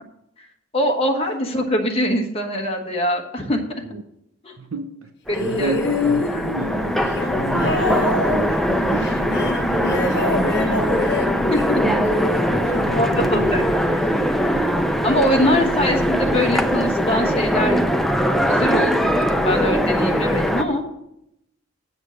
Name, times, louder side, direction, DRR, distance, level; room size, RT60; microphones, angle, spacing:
voice 1, 0.7-3.6 4.4-4.5 5.3-5.8 10.5-10.9 11.5-11.8 12.9-13.6 13.9-14.2 15.0-17.8 18.3-20.8, equal, 30° left, 1.3 m, -23 dB
voice 2, 4.6-5.1 5.4-10.9 11.8-12.2 12.5-14.2, right 2 dB, 85° right, 0.7 m, -31 dB
sound 1, 5.3-13.7 14.7-14.8, left 3 dB, 55° left, 1.1 m, -27 dB
Train, 5.3-20.6, equal, ahead, 0.5 m, -21 dB
8.1 x 7.0 x 6.3 m
head